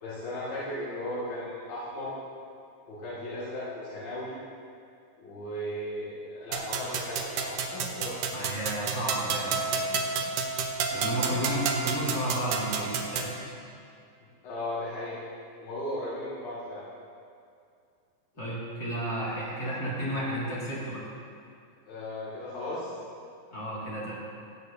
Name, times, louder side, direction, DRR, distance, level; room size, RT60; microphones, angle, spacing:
voice 1, 0.0-2.1 2.9-4.3 5.2-8.2 14.4-15.2 15.6-16.8 21.9-22.9, left 1 dB, 70° left, -11 dB, 4.2 m, -36 dB
sound 1, 6.5-13.3, right 5 dB, 80° right, 1.5 m, -31 dB
voice 2, 8.3-10.2 10.9-13.4 18.3-21.1 23.5-24.1, right 1 dB, 30° left, -8 dB, 2.5 m, -32 dB
17.5 x 8.1 x 2.9 m, 2.4 s
omnidirectional pair, 4.2 m